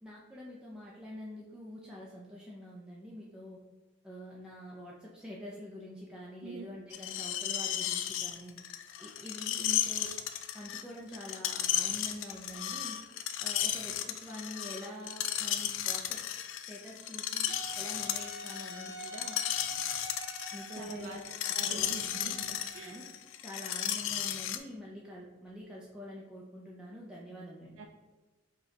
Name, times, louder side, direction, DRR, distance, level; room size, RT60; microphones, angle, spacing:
voice 1, 0.0-3.6 4.0-10.1 10.5-16.2 16.5-19.4 20.5-22.4 22.8-23.0 23.4-27.8, left 1 dB, 5° right, -5 dB, 0.4 m, -46 dB
voice 2, 6.4-6.7 20.8-21.2 21.5-23.0 27.8-27.9, right 4 dB, 75° right, 3 dB, 0.3 m, -45 dB
Screech, 6.9-24.6, left 11 dB, 80° left, 0.3 m, -34 dB
Wind instrument woodwind instrument, 17.5-23.1, right 1 dB, 55° right, 1.1 m, -47 dB
4.9 x 2.2 x 3.8 m, 1.2 s
head